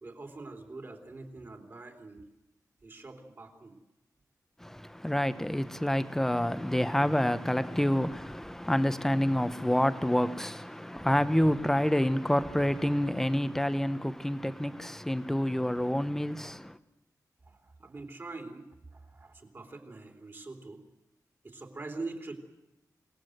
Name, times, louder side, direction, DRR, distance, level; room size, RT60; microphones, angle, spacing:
voice 1, 0.0-2.3 2.8-3.8 17.4-20.8 21.4-22.4, right 3 dB, 35° right, 3.2 m, -44 dB
voice 2, 4.6-16.8, equal, 5° left, 0.9 m, -28 dB
27.5 x 18.5 x 7.8 m
wide cardioid pair, 170°, 7 cm